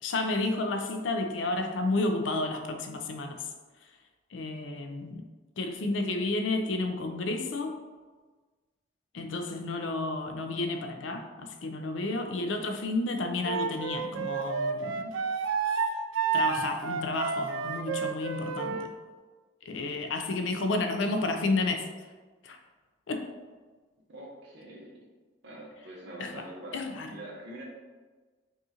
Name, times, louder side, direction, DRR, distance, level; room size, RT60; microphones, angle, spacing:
voice 1, 0.0-3.4 4.3-5.2 5.6-7.8 9.1-15.1 16.3-18.9 19.7-21.9 22.4-22.6 23.1-23.3 26.2-26.3 26.7-27.1, left 2 dB, 75° left, 5 dB, 0.5 m, -31 dB
Wind instrument woodwind instrument, 13.4-18.9, right 5 dB, 85° right, 0.3 m, -30 dB
voice 2, 24.1-24.9 25.4-27.6, right 1 dB, 65° right, -3 dB, 1.0 m, -44 dB
5.3 x 2.5 x 2.8 m, 1.4 s
head